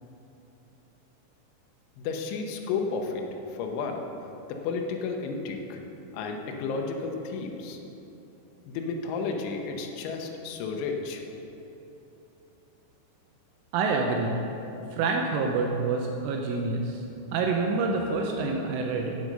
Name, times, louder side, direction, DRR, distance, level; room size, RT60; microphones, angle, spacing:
voice 1, 2.0-4.0 4.5-5.8 6.1-7.8 8.7-11.2, left 4 dB, 80° left, 2 dB, 3.2 m, -32 dB
voice 2, 13.7-14.4 14.9-17.1 17.3-19.1, right 4 dB, 85° right, 1 dB, 3.2 m, -27 dB
12.0 x 7.9 x 5.4 m, 3.0 s
omnidirectional pair, 5.6 m